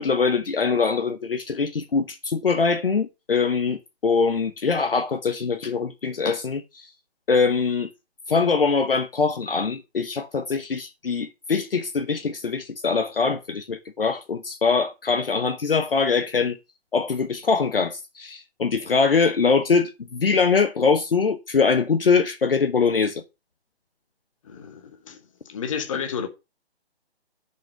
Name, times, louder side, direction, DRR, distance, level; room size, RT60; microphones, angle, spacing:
voice 1, 0.0-6.9 7.3-7.9 8.3-16.6 16.9-23.2, left 5 dB, 60° left, 1.0 m, -23 dB
voice 2, 24.4-25.2 25.4-26.3, left 7 dB, 30° left, 1.4 m, -31 dB
7.1 x 5.6 x 6.4 m
figure-of-eight pair, 145°, 33 cm